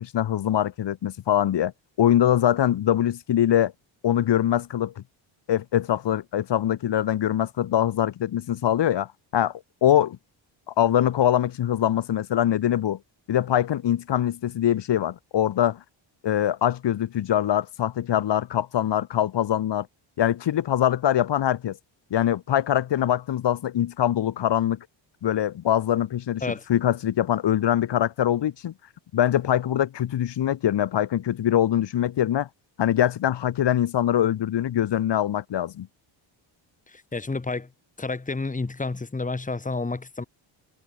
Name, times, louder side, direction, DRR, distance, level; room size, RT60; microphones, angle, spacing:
voice 1, 0.0-1.7 2.0-3.7 4.0-5.0 5.5-9.5 9.8-10.2 10.7-13.0 13.3-15.8 16.2-19.9 20.2-21.8 22.1-24.8 25.2-26.4 26.7-28.7 29.1-32.5 32.8-35.9, left 11 dB, 60° left, 4.3 m, -23 dB
voice 2, 36.9-37.7 38.0-40.2, left 3 dB, 15° left, 4.2 m, -30 dB
cardioid pair, 130°, 48 cm